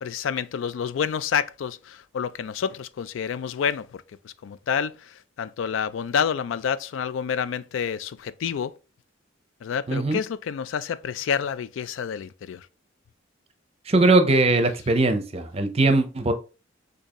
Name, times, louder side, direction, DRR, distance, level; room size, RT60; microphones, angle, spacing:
voice 1, 0.0-8.7 9.6-12.7, left 7 dB, 80° left, 0.3 m, -29 dB
voice 2, 9.9-10.2 13.9-16.3, right 2 dB, 30° right, 0.6 m, -20 dB
6.5 x 2.7 x 2.9 m
head